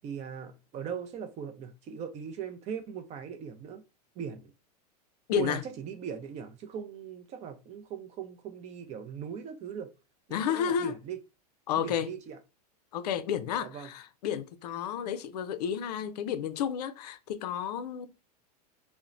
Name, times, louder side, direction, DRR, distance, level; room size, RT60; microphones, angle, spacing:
voice 1, 0.0-3.8 4.2-4.5 5.3-9.9 10.3-11.2 11.8-12.4 13.6-13.9, right 8 dB, 35° right, 0.5 m, -39 dB
voice 2, 5.3-5.6 10.3-11.0 11.7-12.1 12.9-18.1, left 9 dB, 75° left, 0.4 m, -31 dB
2.9 x 2.1 x 2.4 m
hypercardioid pair, 110°, 21 cm